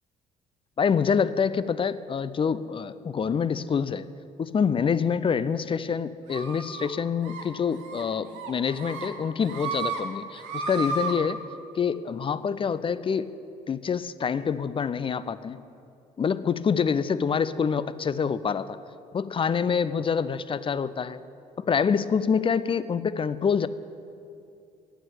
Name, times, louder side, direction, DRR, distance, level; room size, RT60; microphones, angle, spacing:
voice 1, 0.8-4.0 4.4-11.4 11.7-13.4 13.7-15.6 16.2-18.8 19.1-21.2 21.6-23.7, left 6 dB, 25° left, 16 dB, 0.4 m, -26 dB
sound 1, 6.3-6.9 7.2-7.4 7.8-8.0 8.3-9.1 9.4-10.0 10.3-11.1, right 4 dB, 65° right, 1.3 m, -33 dB
9.1 x 8.7 x 8.4 m, 2.6 s
figure-of-eight pair, 45°, 21 cm